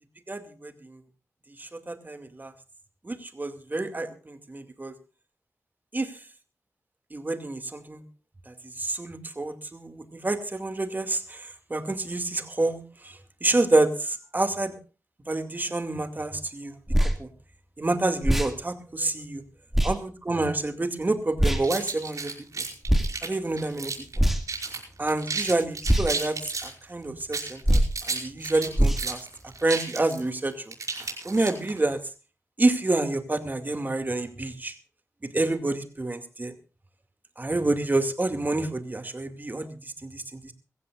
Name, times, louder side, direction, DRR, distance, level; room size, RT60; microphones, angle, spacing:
voice 1, 0.3-1.0 1.6-2.5 3.0-4.9 5.9-6.2 7.1-8.0 8.5-14.7 15.3-17.3 17.8-19.4 19.8-22.7 23.2-24.2 25.0-29.3 29.6-30.7 31.2-32.0 32.6-34.8 35.2-36.5 37.4-40.5, right 2 dB, 30° right, 8 dB, 2.4 m, -28 dB
sound 1, 16.9-17.2 18.2-18.5 19.7-19.9 21.4-21.6 22.8-23.1 24.1-24.6 25.8-26.1 27.6-27.9 28.7-29.1, right 1 dB, 5° right, 2.4 m, -21 dB
sound 2, 21.6-24.2 24.5-24.8 25.1-26.7 27.2-31.8, right 4 dB, 75° right, 5.6 m, -33 dB
23.0 x 15.0 x 2.5 m, 0.35 s
wide cardioid pair, 90°, 6 cm